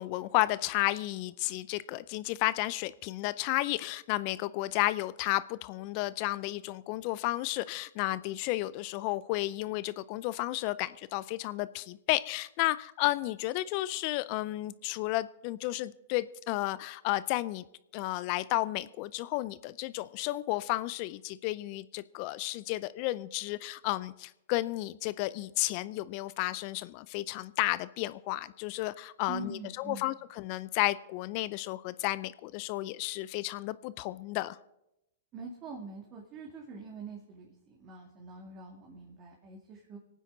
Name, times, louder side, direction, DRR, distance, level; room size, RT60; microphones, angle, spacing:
voice 1, 0.0-17.6 17.9-34.6, left 18 dB, 45° left, 17 dB, 0.4 m, -32 dB
voice 2, 29.3-30.1 35.3-40.0, right 4 dB, 35° right, 0 dB, 2.1 m, -44 dB
24.5 x 9.2 x 3.9 m, 0.86 s
hypercardioid pair, 115°, 0 cm